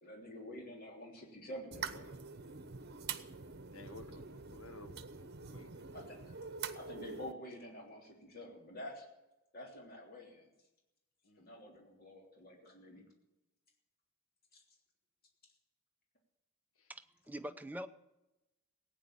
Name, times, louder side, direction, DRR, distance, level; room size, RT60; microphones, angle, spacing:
voice 1, 0.0-2.1 5.9-6.3 6.7-9.1 9.5-10.5 11.4-13.1 14.5-14.6, equal, 45° left, 0 dB, 3.3 m, -48 dB
sound 1, 1.7-7.3, right 6 dB, 50° right, 1.0 m, -45 dB
voice 2, 3.7-5.0 5.5-5.9 11.2-11.6 16.8-16.9, left 3 dB, 85° left, 9 dB, 1.4 m, -54 dB
voice 3, 16.9-17.9, equal, 10° right, 8 dB, 0.6 m, -44 dB
17.0 x 9.2 x 8.7 m, 0.96 s
head